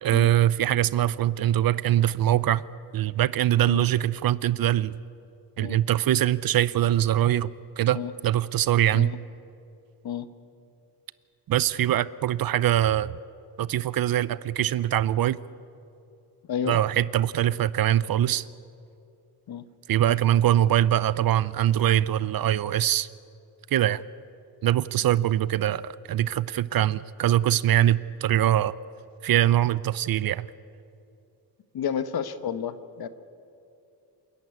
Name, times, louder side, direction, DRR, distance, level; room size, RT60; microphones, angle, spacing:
voice 1, 0.0-2.6 2.9-4.9 5.6-9.1 11.5-13.1 13.6-15.4 16.7-18.5 19.9-23.1 23.7-24.0 24.6-28.7 29.2-30.5, right 12 dB, 55° right, 19 dB, 0.5 m, -23 dB
voice 2, 16.5-16.8 19.5-19.6 31.7-33.1, left 8 dB, 60° left, 13 dB, 1.1 m, -31 dB
27.5 x 11.0 x 9.7 m, 2.6 s
wide cardioid pair, 140°, 42 cm